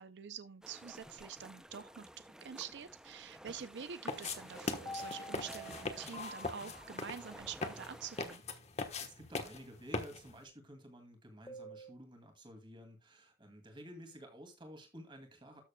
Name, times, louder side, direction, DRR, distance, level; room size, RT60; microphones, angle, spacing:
voice 1, 0.0-8.4, right 7 dB, 80° right, 0.5 m, -47 dB
sound 1, 0.6-8.4, right 1 dB, 5° right, 0.5 m, -53 dB
sound 2, 4.1-10.4, left 3 dB, 40° left, 1.1 m, -41 dB
sound 3, 4.5-7.3 11.5-11.9, equal, 20° left, 1.4 m, -48 dB
voice 2, 9.0-15.6, equal, 30° right, 2.3 m, -53 dB
13.0 x 6.7 x 2.2 m
head